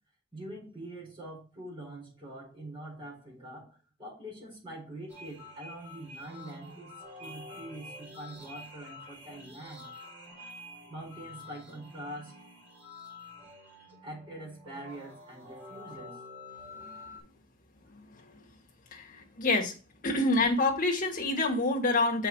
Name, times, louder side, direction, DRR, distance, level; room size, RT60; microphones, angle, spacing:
voice 1, 0.3-6.9 7.2-9.9 10.9-12.3 14.0-16.2, right 1 dB, 25° right, -3 dB, 4.6 m, -44 dB
sound 1, 5.1-17.2, left 2 dB, 10° right, 4.0 m, -48 dB
voice 2, 18.9-19.7 20.0-22.3, left 2 dB, 45° left, 1 dB, 1.7 m, -27 dB
6.8 x 4.8 x 4.6 m, 0.34 s
head